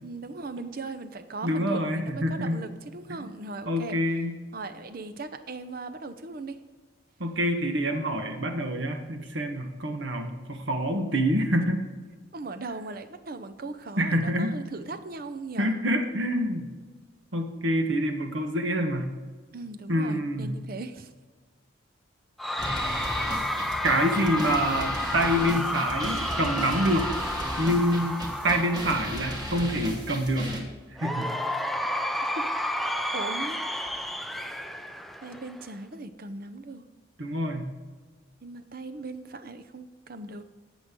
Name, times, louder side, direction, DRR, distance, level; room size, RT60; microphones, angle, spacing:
voice 1, 0.0-4.0 4.5-6.6 12.3-15.8 19.5-21.1 22.5-22.7 24.4-24.5 33.1-34.0 35.2-36.8 38.4-40.4, right 3 dB, 50° right, 9 dB, 0.7 m, -38 dB
voice 2, 1.4-2.6 3.1-3.2 3.6-4.3 7.2-11.8 14.0-14.5 15.6-16.7 17.3-19.2 19.9-20.5 23.8-27.1 27.6-30.5 31.0-31.4 37.2-37.7, equal, 70° right, 5 dB, 1.4 m, -26 dB
Cheering / Crowd, 22.4-29.7 31.0-35.7, left 1 dB, ahead, 0.4 m, -31 dB
sound 1, 22.6-30.6, equal, 20° right, 1.5 m, -35 dB
17.0 x 6.3 x 3.8 m, 1.4 s
head